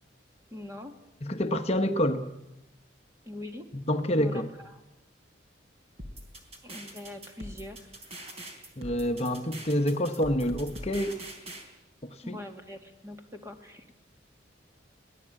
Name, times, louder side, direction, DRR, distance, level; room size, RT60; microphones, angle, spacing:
voice 1, 0.5-0.9 3.3-3.7 4.2-4.8 6.6-7.9 12.2-14.0, left 1 dB, 15° right, 2.1 m, -43 dB
voice 2, 1.2-2.3 3.7-4.5 8.8-11.2 12.1-12.4, equal, 35° left, 1.0 m, -27 dB
sound 1, 6.0-11.6, right 1 dB, 35° right, 4.1 m, -42 dB
23.5 x 17.5 x 8.7 m
head